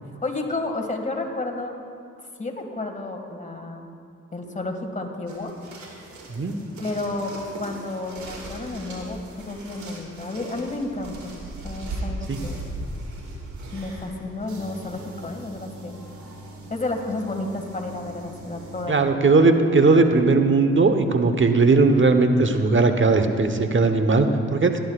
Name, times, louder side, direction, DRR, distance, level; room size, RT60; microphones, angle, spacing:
voice 1, 0.2-1.7 2.4-3.9 4.3-5.5 6.8-11.2 11.6-12.6 13.7-16.0 16.7-19.1, left 2 dB, 25° left, 2 dB, 2.0 m, -31 dB
sound 1, 5.3-19.0, right 1 dB, 75° right, 2.2 m, -39 dB
voice 2, 18.9-24.8, right 3 dB, 40° right, 7 dB, 1.1 m, -18 dB
17.5 x 11.5 x 2.4 m, 2.3 s
supercardioid pair, 45°, 30 cm